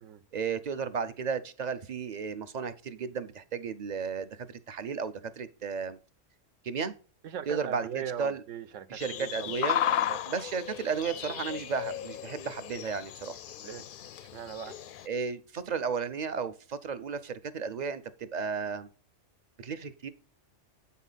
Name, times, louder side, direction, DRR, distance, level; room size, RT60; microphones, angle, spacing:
voice 1, 0.3-6.0 6.6-6.9 7.5-8.4 8.9-9.8 10.3-13.4 15.1-18.9 19.6-20.1, right 5 dB, 45° right, 0.6 m, -34 dB
voice 2, 7.2-9.5 9.8-10.2 13.6-13.9 14.2-14.8, right 8 dB, 80° right, 1.1 m, -40 dB
sound 1, 9.0-15.1, left 11 dB, 60° left, 0.5 m, -34 dB
8.2 x 5.6 x 4.0 m
omnidirectional pair, 1.3 m